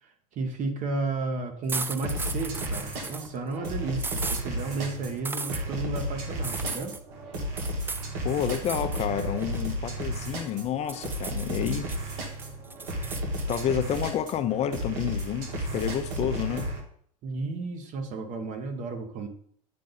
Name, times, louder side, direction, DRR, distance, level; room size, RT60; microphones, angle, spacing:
voice 1, 0.0-6.9 17.2-19.3, right 3 dB, 45° right, 1.1 m, -33 dB
sound 1, 1.7-3.3 4.0-4.4 5.2-5.6 6.4-7.0 7.6-8.1 8.5-9.1 9.4-10.5 10.9-12.0 12.4-13.6, right 4 dB, 10° right, 0.4 m, -36 dB
sound 2, 2.0-16.8, right 1 dB, 65° right, 1.5 m, -33 dB
voice 2, 8.2-11.9 13.5-16.7, left 9 dB, 35° left, 0.6 m, -29 dB
8.6 x 3.8 x 4.0 m
hypercardioid pair, 85°, 18 cm